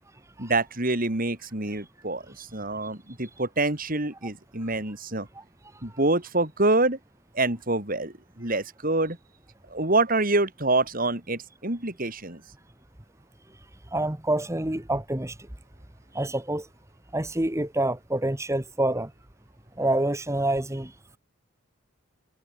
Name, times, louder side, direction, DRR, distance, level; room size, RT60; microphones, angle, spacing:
voice 1, 0.4-5.3 5.8-7.0 7.3-9.2 9.7-12.4, right 2 dB, 45° right, 3.6 m, -26 dB
voice 2, 13.9-15.4 16.1-16.7 17.1-19.1 19.8-20.9, right 1 dB, 15° right, 1.4 m, -27 dB
head